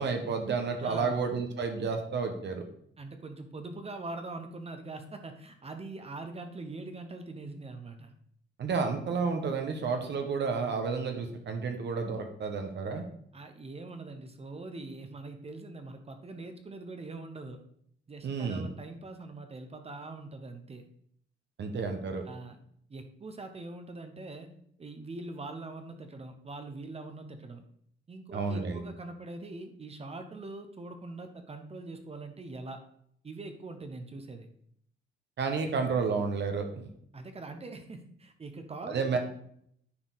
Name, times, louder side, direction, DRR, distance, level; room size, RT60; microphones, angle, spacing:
voice 1, 0.0-2.6 8.6-13.0 18.2-18.7 21.6-22.2 28.3-28.8 35.4-36.9 38.9-39.2, right 5 dB, 60° right, 5 dB, 1.2 m, -31 dB
voice 2, 0.8-1.2 3.0-8.1 13.3-17.6 18.1-20.8 22.3-22.6 22.9-24.5 24.8-27.6 28.1-32.8 33.2-34.5 37.1-39.2, right 2 dB, 30° right, 6 dB, 1.0 m, -43 dB
9.8 x 4.7 x 4.1 m, 0.67 s
cardioid pair, 115°, 20 cm